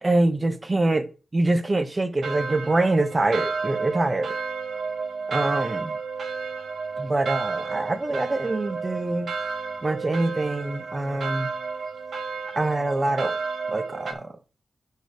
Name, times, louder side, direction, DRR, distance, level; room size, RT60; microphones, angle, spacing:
voice 1, 0.0-4.3 5.3-6.0 7.0-9.3 9.8-11.5 12.5-13.4 13.7-14.3, right 2 dB, 25° right, 1.1 m, -25 dB
sound 1, 2.2-14.1, right 4 dB, 85° right, 1.5 m, -32 dB
9.9 x 4.7 x 4.8 m
wide cardioid pair, 120°, 0 cm